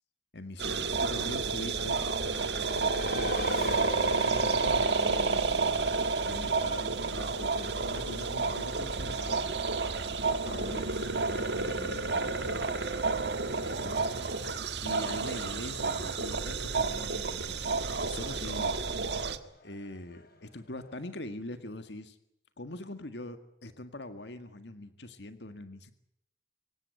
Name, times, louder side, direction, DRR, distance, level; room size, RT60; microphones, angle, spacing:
voice 1, 0.3-5.5 5.9-9.7 10.3-12.6 13.7-14.0 14.2-14.5 14.8-18.7 19.6-22.2 22.6-25.9, left 1 dB, 75° left, 9 dB, 1.8 m, -43 dB
sound 1, 0.6-19.4, right 4 dB, 75° right, 1.7 m, -30 dB
Race car auto racing, 2.1-21.2, left 3 dB, 55° left, 2.8 m, -47 dB
26.0 x 16.5 x 9.0 m, 0.79 s
head